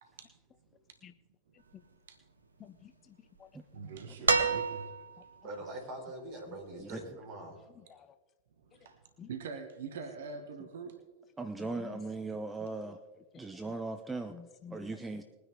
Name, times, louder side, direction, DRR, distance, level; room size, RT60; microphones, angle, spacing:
voice 1, 2.6-3.5 6.5-6.6 7.9-8.2 9.2-9.3 11.8-12.0 13.5-13.7 14.3-14.9, left 8 dB, 25° left, 10 dB, 0.7 m, -51 dB
voice 2, 3.7-5.3 8.6-9.0 9.3-11.0, right 5 dB, 60° right, 7 dB, 1.3 m, -44 dB
sound 1, 4.3-5.3 6.8-6.9, right 4 dB, 75° right, 0.9 m, -28 dB
voice 3, 5.3-7.6, right 1 dB, 40° right, 0 dB, 4.1 m, -43 dB
voice 4, 11.4-13.0 13.4-14.4 14.7-15.2, right 3 dB, 10° right, 8 dB, 0.7 m, -38 dB
21.0 x 9.7 x 3.5 m, 1.2 s
figure-of-eight pair, 90°, 0 cm